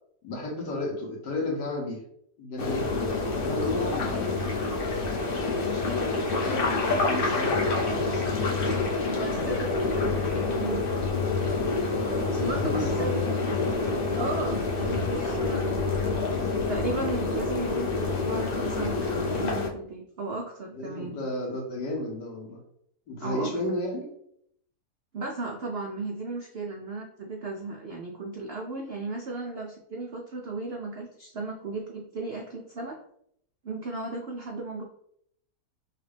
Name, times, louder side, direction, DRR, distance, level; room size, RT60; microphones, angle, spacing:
voice 1, 0.2-2.0 2.4-4.5 5.6-8.6 12.0-13.4 20.7-22.6 23.1-24.1, left 1 dB, 75° left, -1 dB, 1.7 m, -33 dB
sound 1, 2.6-19.7, left 3 dB, 45° left, 0.7 m, -27 dB
voice 2, 9.0-11.2 12.3-13.2 14.1-15.8 16.7-21.2 23.2-23.6 25.1-33.0 33.6-34.8, right 3 dB, 85° right, 0 dB, 0.5 m, -35 dB
5.8 x 2.4 x 3.4 m, 0.70 s
omnidirectional pair, 1.8 m